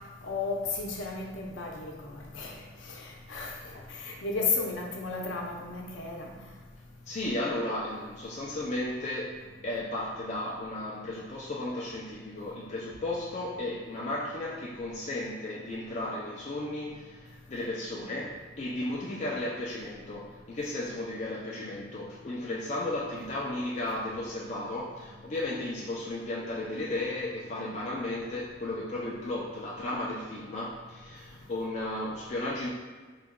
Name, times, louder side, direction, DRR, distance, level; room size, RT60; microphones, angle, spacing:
voice 1, 0.2-2.6 2.9-6.3, left 4 dB, 80° left, 0 dB, 0.6 m, -34 dB
voice 2, 7.1-9.4 9.6-32.7, left 1 dB, 35° left, -5 dB, 0.4 m, -34 dB
3.8 x 2.3 x 3.5 m, 1.4 s
head